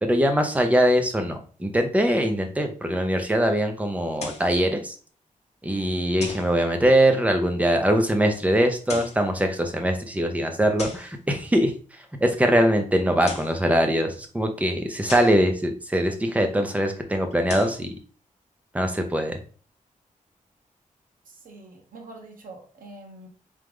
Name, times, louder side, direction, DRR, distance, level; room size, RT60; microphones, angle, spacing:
voice 1, 0.0-4.9 5.6-11.7 12.2-17.9 18.7-19.4, equal, 10° right, 5 dB, 0.6 m, -22 dB
sound 1, 4.2-4.5 6.2-6.5 8.7-9.2 10.8-11.1 13.1-13.6 15.1-15.4 17.3-17.8, left 3 dB, 50° left, 0.8 m, -37 dB
voice 2, 21.3-23.3, right 2 dB, 85° right, 2 dB, 1.1 m, -45 dB
3.6 x 3.3 x 3.5 m, 0.41 s
wide cardioid pair, 165°, 14 cm